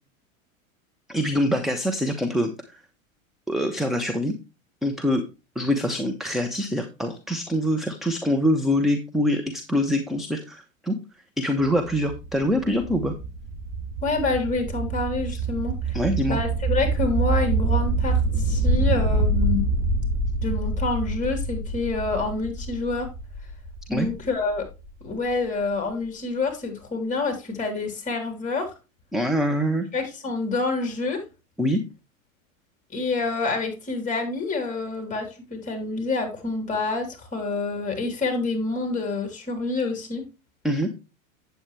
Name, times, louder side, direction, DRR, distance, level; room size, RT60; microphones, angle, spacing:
voice 1, 1.1-2.8 3.5-4.3 4.8-5.2 5.6-11.0 11.4-13.1 15.3-15.4 15.9-16.4 23.9-24.1 29.1-29.9 31.6-31.8 40.6-40.9, equal, ahead, 5 dB, 0.7 m, -24 dB
sound 1, 11.6-25.3, right 3 dB, 25° right, 5.3 m, -26 dB
voice 2, 14.0-16.0 16.3-19.6 20.4-23.1 23.9-24.6 25.0-28.7 29.9-31.2 32.9-40.2, left 3 dB, 20° left, 4 dB, 3.4 m, -27 dB
8.8 x 7.9 x 3.2 m, 0.28 s
hypercardioid pair, 115°, 41 cm